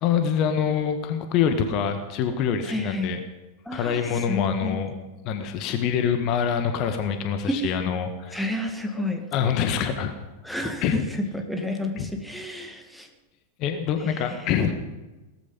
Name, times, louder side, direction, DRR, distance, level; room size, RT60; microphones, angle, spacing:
voice 1, 0.0-3.2 3.7-5.0 5.2-8.4 9.3-10.1 10.8-11.1 12.0-12.1 13.6-14.7, left 7 dB, 40° left, 7 dB, 1.7 m, -25 dB
voice 2, 2.7-3.2 3.7-4.0 4.3-4.8 7.5-7.7 8.3-9.3 10.4-11.0 11.3-13.1 14.3-14.4, left 1 dB, 5° left, 4 dB, 1.9 m, -30 dB
18.0 x 14.0 x 5.4 m, 1.1 s
figure-of-eight pair, 90°, 0 cm